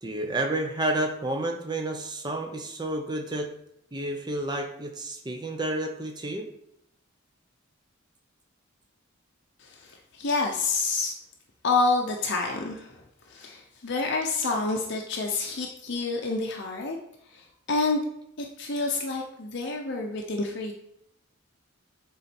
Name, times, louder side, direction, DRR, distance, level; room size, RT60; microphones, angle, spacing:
voice 1, 0.0-3.5 3.9-6.4, right 1 dB, 20° right, 3 dB, 0.8 m, -30 dB
voice 2, 9.6-11.2 11.6-13.0 13.3-17.0 17.3-18.0 18.6-20.7, left 3 dB, 55° left, 1 dB, 0.7 m, -28 dB
7.2 x 3.9 x 4.4 m, 0.76 s
head